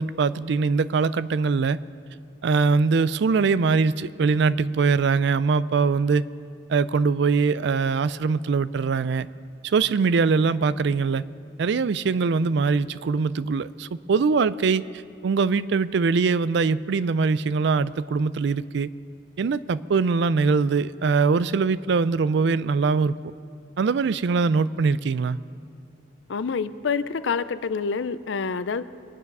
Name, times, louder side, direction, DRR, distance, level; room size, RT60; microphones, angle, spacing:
voice 1, 0.0-1.8 2.4-6.2 6.7-9.3 9.6-11.2 11.6-14.8 15.2-18.9 19.4-23.2 23.8-25.4, right 4 dB, 65° right, 17 dB, 0.4 m, -22 dB
voice 2, 26.3-28.8, left 5 dB, 75° left, 14 dB, 0.5 m, -27 dB
24.5 x 9.4 x 5.4 m, 2.5 s
head